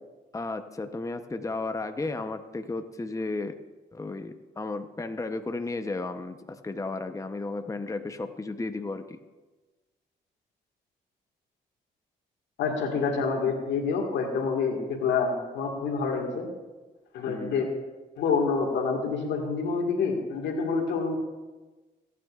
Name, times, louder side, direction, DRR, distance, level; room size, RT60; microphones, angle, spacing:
voice 1, 0.3-3.5 3.9-9.2 17.2-17.7, left 3 dB, 15° left, 8 dB, 0.8 m, -34 dB
voice 2, 12.6-16.5 17.1-17.7 18.2-21.2, left 5 dB, 85° left, 2 dB, 1.8 m, -27 dB
20.0 x 9.3 x 2.4 m, 1.2 s
supercardioid pair, 60°, 18 cm